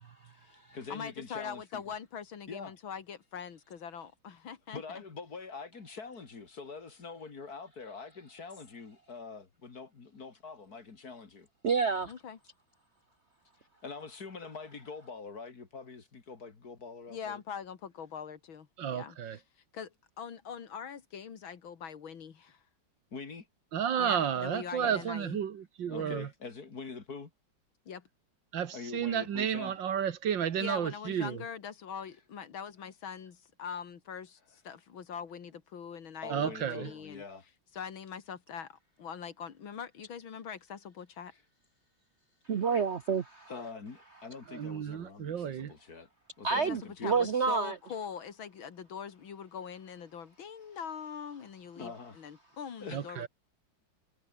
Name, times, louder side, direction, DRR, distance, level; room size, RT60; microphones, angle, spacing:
voice 1, 0.3-1.8 2.5-2.7 4.7-11.5 13.8-17.4 23.1-23.5 24.8-25.1 25.9-27.3 28.7-29.8 36.2-37.4 43.5-46.1 46.4-47.2 51.7-52.2 52.8-53.0, left 4 dB, 50° left, 3.1 m, -44 dB
voice 2, 0.9-5.0 12.1-12.4 17.1-19.4 19.7-22.6 24.0-25.4 25.9-26.2 27.9-28.1 30.6-37.2 37.7-41.3 46.7-53.3, left 7 dB, 85° left, 2.7 m, -43 dB
voice 3, 11.6-12.1 42.5-43.5 46.4-47.7, right 5 dB, 50° right, 0.8 m, -28 dB
voice 4, 18.8-19.4 23.7-26.3 28.5-31.4 36.3-36.9 44.5-45.7 52.9-53.3, right 8 dB, 70° right, 2.0 m, -32 dB
omnidirectional pair, 2.2 m